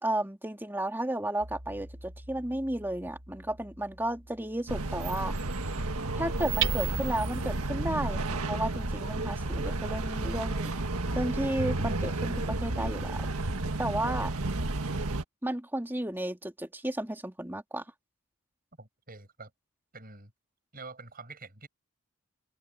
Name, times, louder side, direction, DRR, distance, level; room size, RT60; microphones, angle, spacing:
voice 1, 0.0-5.3 6.1-10.7 11.1-13.3 13.8-14.3 15.4-17.8, right 1 dB, 10° right, 2.4 m, -33 dB
Hammer, 1.4-13.1, right 5 dB, 55° right, 4.2 m, -42 dB
sound 1, 4.7-15.2, right 2 dB, 75° right, 1.7 m, -32 dB
voice 2, 18.8-19.5 19.9-20.3 20.7-21.7, right 3 dB, 40° right, 7.4 m, -46 dB
head